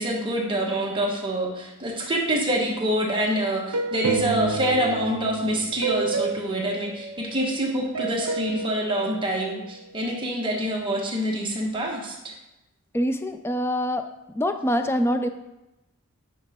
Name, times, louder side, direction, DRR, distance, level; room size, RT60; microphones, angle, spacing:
voice 1, 0.0-12.3, right 1 dB, 25° right, -2 dB, 1.3 m, -26 dB
sound 1, 3.7-7.6 7.9-10.0, right 4 dB, 80° right, 0.6 m, -30 dB
voice 2, 12.9-14.1 14.3-15.3, equal, 10° left, 8 dB, 0.4 m, -24 dB
8.5 x 5.9 x 3.6 m, 0.94 s
head